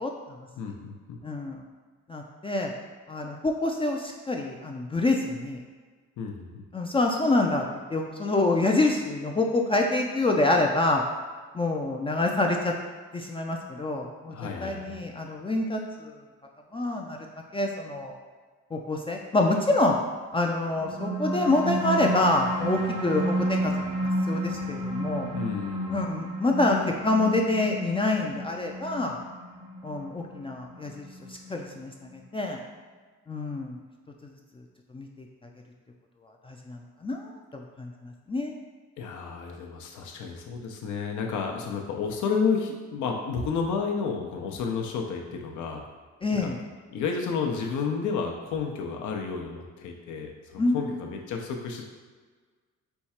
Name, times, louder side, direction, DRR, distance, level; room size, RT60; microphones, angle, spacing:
voice 1, 0.0-0.5 1.2-1.6 2.1-2.7 3.1-5.6 6.7-7.6 7.9-11.0 11.5-12.7 13.1-14.3 14.6-16.2 16.7-17.2 17.5-18.2 18.7-20.0 20.3-23.7 24.3-25.3 25.9-29.2 29.8-32.6 33.3-33.8 34.9-35.3 36.4-38.5 46.2-46.6 50.6-51.0, left 2 dB, 20° left, 0 dB, 0.4 m, -27 dB
voice 2, 0.6-1.2 6.2-6.6 14.3-15.1 25.3-26.0 39.0-45.8 46.4-46.5 46.9-51.8, left 5 dB, 75° left, 2 dB, 0.7 m, -31 dB
sound 1, 20.6-31.6, equal, 55° right, 0.8 m, -31 dB
4.5 x 2.4 x 4.2 m, 1.5 s
cardioid pair, 90°, 30 cm